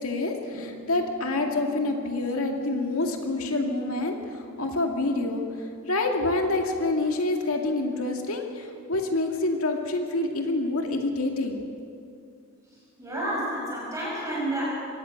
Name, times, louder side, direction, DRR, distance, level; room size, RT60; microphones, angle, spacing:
voice 1, 0.0-4.2 4.6-5.4 5.9-11.6, left 2 dB, 85° left, 3 dB, 2.3 m, -27 dB
sound 1, 0.5-7.5, right 5 dB, 50° right, 6.2 m, -46 dB
voice 2, 13.0-14.6, right 1 dB, 15° right, -6 dB, 6.4 m, -30 dB
23.5 x 18.0 x 6.5 m, 2.4 s
head